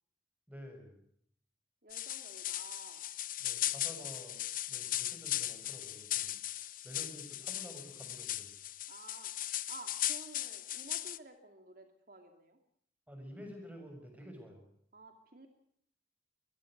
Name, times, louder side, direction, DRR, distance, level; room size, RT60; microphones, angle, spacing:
voice 1, 0.5-1.0 3.4-4.4 4.7-8.6 13.1-14.7, equal, 10° right, 4 dB, 7.3 m, -50 dB
voice 2, 1.8-3.1 8.9-12.6 14.9-15.5, right 3 dB, 50° right, 5 dB, 2.6 m, -53 dB
sound 1, 1.9-11.2, left 13 dB, 45° left, 0.9 m, -38 dB
23.0 x 22.5 x 6.7 m, 0.66 s
head